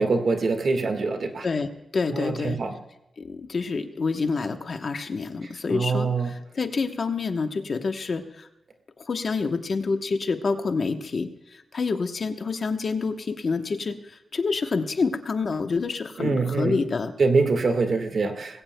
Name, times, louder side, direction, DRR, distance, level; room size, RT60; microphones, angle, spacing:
voice 1, 0.0-1.5 2.1-2.8 5.7-6.3 16.2-16.8 17.2-18.6, right 4 dB, 50° right, 7 dB, 1.6 m, -24 dB
voice 2, 1.4-2.6 3.2-8.5 9.0-17.1, left 4 dB, 45° left, 7 dB, 1.0 m, -28 dB
20.5 x 16.5 x 2.2 m, 0.93 s
wide cardioid pair, 155°, 0 cm